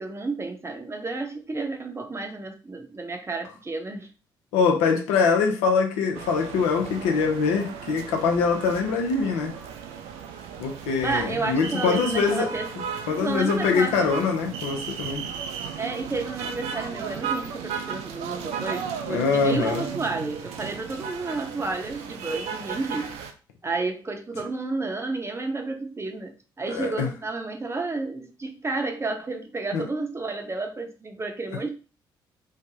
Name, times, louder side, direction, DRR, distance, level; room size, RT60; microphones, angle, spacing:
voice 1, 0.0-4.1 11.0-12.7 13.2-14.1 15.8-23.1 23.6-31.7, right 3 dB, 25° right, 0.7 m, -31 dB
voice 2, 4.5-9.5 10.6-12.5 13.1-15.3 19.1-19.8 26.7-27.1 29.7-29.9 31.5-31.6, left 5 dB, 70° left, 0.5 m, -23 dB
sound 1, 6.1-23.3, right 7 dB, 65° right, 0.4 m, -35 dB
3.2 x 2.1 x 2.7 m
figure-of-eight pair, 40°, 12 cm